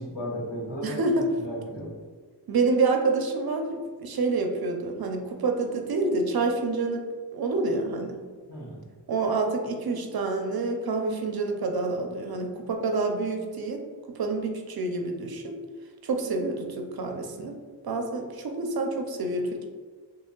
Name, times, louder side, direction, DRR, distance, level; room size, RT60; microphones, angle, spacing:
voice 1, 0.0-1.9 8.5-8.8, equal, 75° left, -5 dB, 1.4 m, -35 dB
voice 2, 0.8-1.3 2.5-8.2 9.1-15.6 16.0-19.7, right 3 dB, 60° right, 4 dB, 0.5 m, -28 dB
2.9 x 2.6 x 3.7 m, 1.5 s
wide cardioid pair, 80°, 42 cm